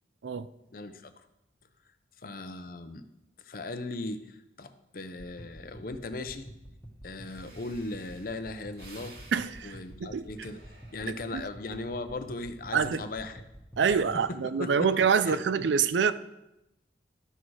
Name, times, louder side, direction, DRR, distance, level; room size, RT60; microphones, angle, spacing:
voice 1, 0.7-1.3 2.2-3.1 3.4-6.5 7.0-9.1 9.6-10.6 10.9-13.4 13.8-14.0 14.3-14.9 15.2-15.4, left 2 dB, 50° left, 0.7 m, -38 dB
sound 1, 5.1-14.2, equal, 15° left, 1.4 m, -49 dB
Breathing, 6.9-7.0 7.2-11.5 11.9-12.3, right 2 dB, 60° right, 2.0 m, -54 dB
voice 2, 9.3-10.3 11.3-11.4 12.7-13.0 13.8-16.1, right 6 dB, 80° right, 0.4 m, -26 dB
12.5 x 6.3 x 4.7 m
head